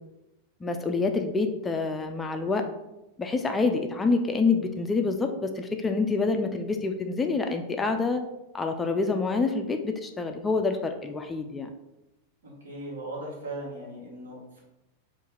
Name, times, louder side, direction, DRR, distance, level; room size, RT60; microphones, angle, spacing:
voice 1, 0.6-2.6 3.2-8.2 8.5-11.7, left 4 dB, 15° left, 5 dB, 0.3 m, -27 dB
voice 2, 12.4-14.6, right 1 dB, 65° right, -3 dB, 1.5 m, -38 dB
4.1 x 2.5 x 3.7 m, 0.93 s
figure-of-eight pair, 90°, 0 cm